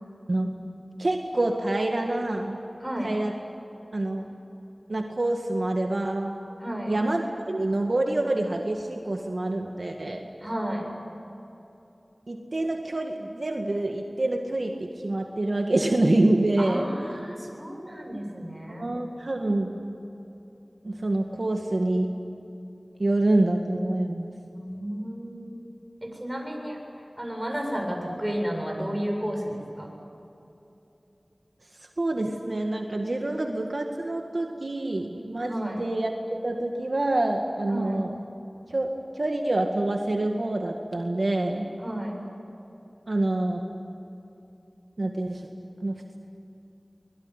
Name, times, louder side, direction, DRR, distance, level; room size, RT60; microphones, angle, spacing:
voice 1, 1.0-2.6 3.0-3.3 3.9-4.2 4.9-6.4 6.9-10.3 12.3-16.9 18.7-19.7 20.8-22.1 23.0-24.3 32.0-38.2 38.7-41.7 43.1-43.7 45.0-45.4 45.8-46.2, right 2 dB, 70° right, 2 dB, 2.0 m, -26 dB
voice 2, 2.8-3.1 6.6-7.0 10.4-10.9 16.6-18.9 24.5-25.6 26.0-26.8 27.2-29.9 35.5-35.8 37.7-38.0 41.8-42.2, equal, 15° right, 1 dB, 7.8 m, -32 dB
24.5 x 22.0 x 9.9 m, 2.9 s
wide cardioid pair, 45°, 0 cm